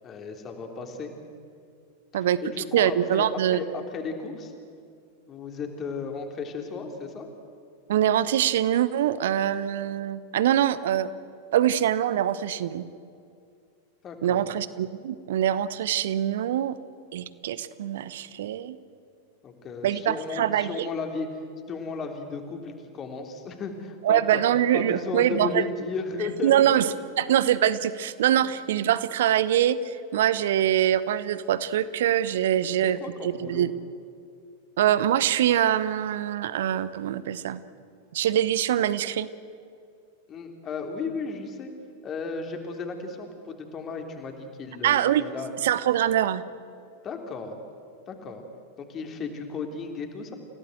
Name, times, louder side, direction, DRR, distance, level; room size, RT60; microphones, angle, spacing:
voice 1, 0.0-1.1 2.4-4.5 5.3-7.3 14.0-14.5 19.4-21.4 21.7-24.4 24.7-27.0 28.4-28.5 32.6-33.7 40.3-41.7 42.0-45.5 47.0-47.6 48.1-48.4 48.8-50.3, left 4 dB, 30° left, 4 dB, 3.3 m, -34 dB
voice 2, 2.7-3.6 7.9-11.1 11.5-12.8 14.2-16.8 17.1-18.8 19.8-20.9 24.0-25.6 26.4-26.9 27.2-33.0 33.2-33.7 34.8-37.6 38.1-39.3 44.8-45.3 45.6-46.4, right 11 dB, 55° right, 16 dB, 1.0 m, -24 dB
29.5 x 17.0 x 7.9 m, 2.5 s
figure-of-eight pair, 90°, 0 cm